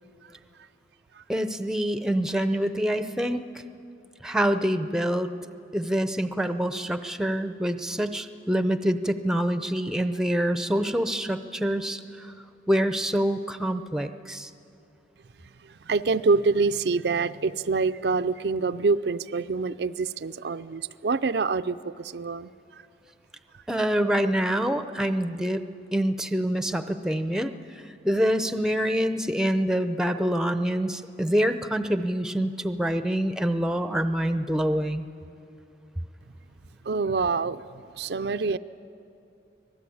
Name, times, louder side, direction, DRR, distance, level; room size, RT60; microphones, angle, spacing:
voice 1, 1.3-3.4 4.2-5.3 5.7-12.0 12.7-14.5 23.7-25.6 25.9-27.5 28.0-35.1, equal, 5° right, 10 dB, 0.6 m, -26 dB
voice 2, 15.9-22.5 36.9-37.6 38.0-38.6, right 4 dB, 70° right, 11 dB, 0.5 m, -26 dB
25.0 x 18.5 x 8.6 m, 2.7 s
head